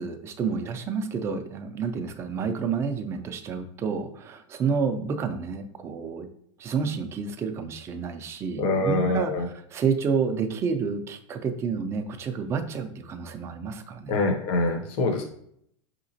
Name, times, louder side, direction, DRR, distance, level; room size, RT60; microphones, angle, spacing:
voice 1, 0.0-6.3 6.6-14.2, right 5 dB, 15° right, 7 dB, 0.3 m, -29 dB
voice 2, 8.6-9.5 14.1-15.2, left 2 dB, 35° left, 2 dB, 0.6 m, -25 dB
5.6 x 2.9 x 2.7 m, 0.69 s
supercardioid pair, 150°, 16 cm